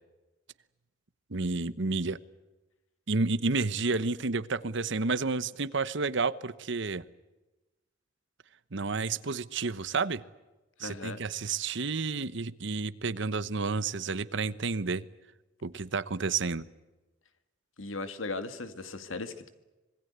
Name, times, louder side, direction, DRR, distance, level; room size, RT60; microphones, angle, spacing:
voice 1, 1.3-2.2 3.1-7.0 8.7-10.2 10.8-15.0 15.6-16.6, right 4 dB, 65° right, 16 dB, 1.0 m, -30 dB
voice 2, 10.8-11.2 17.8-19.5, left 3 dB, 90° left, 10 dB, 2.1 m, -37 dB
26.0 x 22.0 x 8.2 m, 1.1 s
head